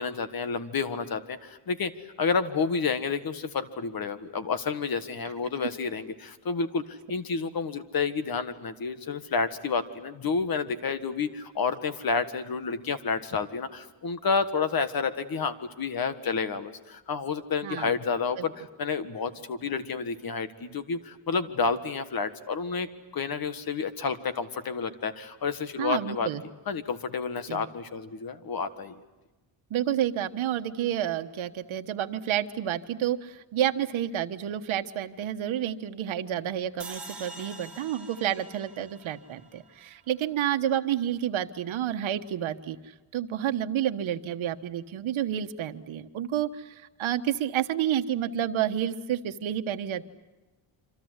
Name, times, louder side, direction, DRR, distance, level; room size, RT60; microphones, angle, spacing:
voice 1, 0.0-1.9 2.2-26.3 26.7-29.0, left 5 dB, 45° left, 11 dB, 1.6 m, -30 dB
voice 2, 25.8-26.4 27.5-27.6 29.7-42.8 43.1-50.0, right 10 dB, 80° right, 8 dB, 1.3 m, -30 dB
sound 1, 36.8-40.0, right 2 dB, ahead, 5.1 m, -45 dB
27.5 x 25.5 x 8.1 m, 1.1 s
wide cardioid pair, 165°, 47 cm